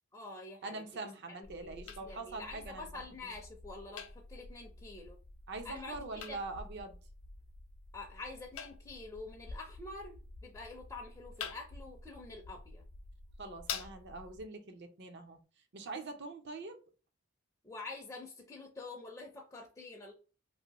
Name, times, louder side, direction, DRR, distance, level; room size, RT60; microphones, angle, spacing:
voice 1, 0.1-0.8 1.5-5.2 5.6-6.4 7.9-12.8 17.6-20.1, left 3 dB, 15° left, 0.4 m, -47 dB
voice 2, 0.6-2.9 3.2-3.3 5.5-7.0 13.4-15.4 15.7-16.8, right 3 dB, 55° right, 0.6 m, -43 dB
sound 1, 1.4-14.4, left 5 dB, 90° left, 0.5 m, -48 dB
2.7 x 2.5 x 2.9 m
head